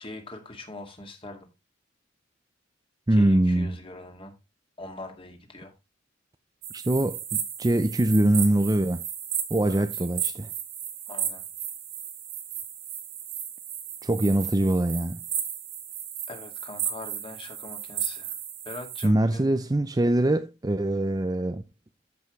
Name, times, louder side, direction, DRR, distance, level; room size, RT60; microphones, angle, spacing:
voice 1, 0.0-1.4 3.1-4.3 4.8-5.7 9.6-9.8 11.1-11.4 16.3-18.3 18.7-19.5, left 2 dB, 25° left, 2.1 m, -42 dB
voice 2, 3.1-3.8 6.7-9.0 9.5-10.5 14.0-15.2 19.0-21.6, right 1 dB, 20° right, 0.5 m, -23 dB
sound 1, 6.6-19.1, right 9 dB, 55° right, 2.3 m, -34 dB
14.0 x 5.6 x 3.1 m
head